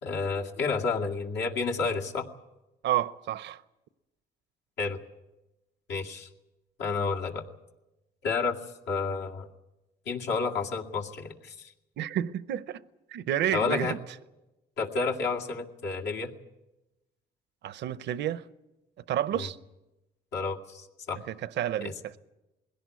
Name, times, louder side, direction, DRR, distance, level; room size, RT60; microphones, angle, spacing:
voice 1, 0.0-2.3 4.8-5.0 5.9-6.3 6.8-7.4 8.2-8.6 8.9-9.5 10.1-11.7 13.5-13.9 14.8-16.3 19.3-19.5 20.3-21.2 21.8-21.9, left 4 dB, 85° left, 2.2 m, -30 dB
voice 2, 2.8-3.6 12.0-12.8 13.1-14.0 17.6-18.4 19.1-19.6 21.3-21.9, right 11 dB, 75° right, 0.7 m, -30 dB
21.0 x 17.0 x 9.5 m
cardioid pair, 90°, 18 cm